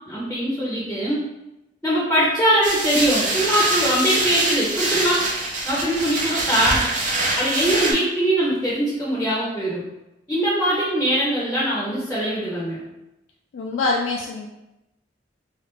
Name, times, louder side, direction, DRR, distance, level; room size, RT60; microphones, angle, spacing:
voice 1, 0.1-1.3 1.8-5.2 5.6-6.8 7.4-9.8 10.3-12.8, equal, 10° left, -7 dB, 0.7 m, -22 dB
sound 1, 2.6-7.9, right 2 dB, 40° right, 0.6 m, -24 dB
voice 2, 13.5-14.5, left 3 dB, 75° left, -1 dB, 0.3 m, -24 dB
3.2 x 2.4 x 3.0 m, 0.93 s
head